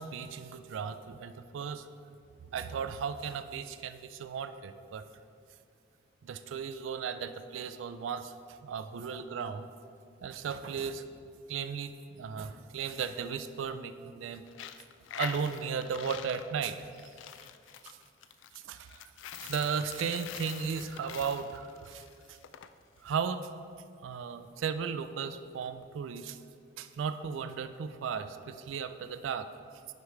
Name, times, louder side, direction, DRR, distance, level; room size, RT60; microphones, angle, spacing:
voice 1, 0.0-1.9 2.5-5.0 6.2-8.3 8.6-9.7 10.2-11.0 11.5-14.4 15.2-16.9 17.8-18.0 18.6-19.0 19.4-22.4 23.0-23.5 24.0-26.4 26.8-29.5, right 6 dB, 90° right, 11 dB, 0.3 m, -36 dB
Coin (dropping), 14.5-22.7, left 9 dB, 75° left, 0.3 m, -44 dB
9.5 x 3.2 x 4.8 m, 2.3 s
head